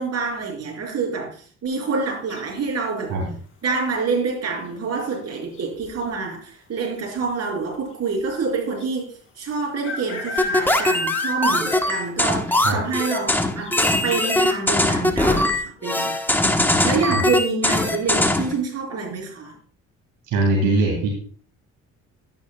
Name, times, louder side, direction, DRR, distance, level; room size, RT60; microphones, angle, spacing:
voice 1, 0.0-3.2 3.6-16.5 16.8-19.6, right 4 dB, 55° right, 5.1 m, -27 dB
sound 1, 2.3-2.8 4.6-5.0 5.2-5.3 5.5-6.1 6.8-6.9 7.2-7.3 8.8-8.9 9.8-12.1 12.5-12.6 13.1-13.2 13.6-13.7, left 2 dB, 45° left, 4.1 m, -29 dB
sound 2, 10.4-18.5, left 1 dB, 5° left, 1.1 m, -21 dB
voice 2, 20.3-21.1, right 2 dB, 85° right, 2.8 m, -21 dB
11.5 x 10.5 x 2.3 m
cardioid pair, 90°, 30 cm